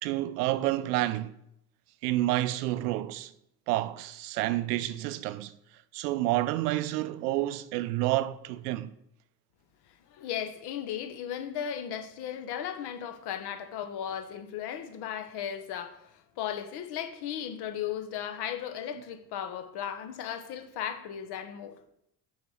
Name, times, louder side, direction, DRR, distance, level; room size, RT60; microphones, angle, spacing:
voice 1, 0.0-1.3 2.0-3.3 3.7-5.5 5.9-8.9, right 16 dB, 70° right, 0.7 m, -29 dB
voice 2, 10.1-21.8, left 9 dB, 50° left, 1.2 m, -36 dB
7.1 x 5.7 x 5.0 m
hypercardioid pair, 70°, 49 cm